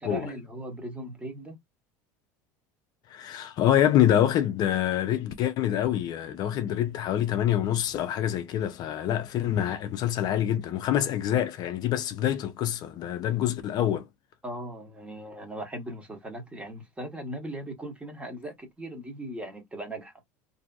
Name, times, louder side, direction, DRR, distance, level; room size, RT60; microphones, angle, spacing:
voice 1, 0.0-1.6 14.4-20.1, right 1 dB, 15° right, 1.1 m, -38 dB
voice 2, 3.1-14.1, left 11 dB, 50° left, 0.4 m, -26 dB
2.6 x 2.6 x 2.3 m
supercardioid pair, 100°, 9 cm